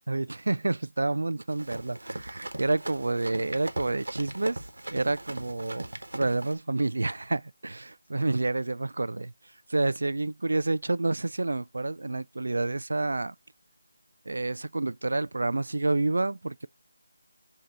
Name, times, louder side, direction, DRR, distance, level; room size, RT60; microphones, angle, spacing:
voice 1, 0.1-4.6 4.9-5.9 6.1-9.3 9.7-13.3 14.3-16.7, right 2 dB, 75° right, 0.3 m, -29 dB
Run, 1.5-6.5, right 1 dB, 90° right, 1.1 m, -39 dB
7.9 x 2.8 x 6.1 m
figure-of-eight pair, 170°, 0 cm